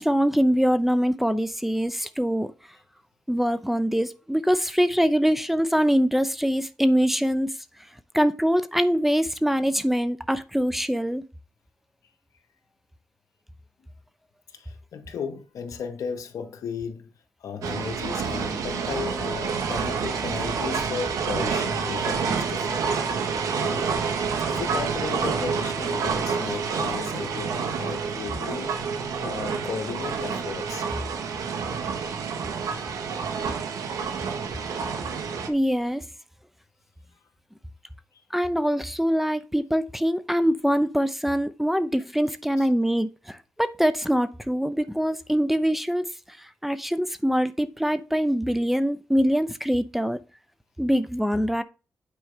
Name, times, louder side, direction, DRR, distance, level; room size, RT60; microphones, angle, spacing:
voice 1, 0.0-2.5 3.3-7.5 8.1-11.2 35.5-36.0 38.3-50.2 50.8-51.6, equal, 5° right, 0.7 m, -23 dB
voice 2, 14.5-17.1 17.4-23.0 23.6-28.8 29.2-30.9 31.6-31.7 38.1-38.2 42.6-42.7, left 6 dB, 80° left, 1.2 m, -35 dB
sound 1, 17.6-35.5, right 5 dB, 85° right, 0.9 m, -28 dB
9.1 x 4.7 x 3.2 m
cardioid pair, 60°, 6 cm